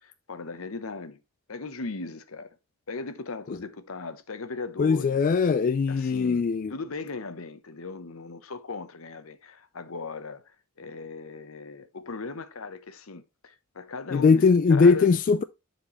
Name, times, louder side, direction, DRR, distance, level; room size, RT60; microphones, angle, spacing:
voice 1, 0.0-1.2 1.5-2.5 2.9-5.1 5.9-6.4 6.7-10.4 10.8-15.1, left 3 dB, 70° left, 0.9 m, -38 dB
voice 2, 4.8-6.7 14.1-15.4, left 4 dB, 40° left, 0.3 m, -20 dB
9.8 x 4.5 x 3.1 m
head